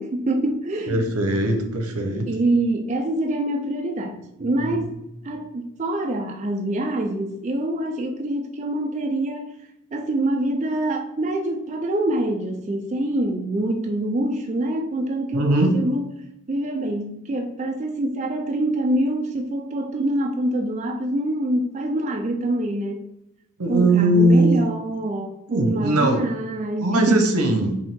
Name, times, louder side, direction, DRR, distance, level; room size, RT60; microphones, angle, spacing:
voice 1, 0.0-1.5 2.3-4.9 5.2-9.5 9.9-16.0 16.5-23.1 23.7-27.3, right 1 dB, 30° right, 0.3 m, -25 dB
voice 2, 0.9-2.3 4.4-4.8 15.3-15.8 23.6-24.6 25.5-26.2 26.8-27.7, right 1 dB, 85° right, 0.8 m, -20 dB
5.3 x 2.7 x 3.6 m
head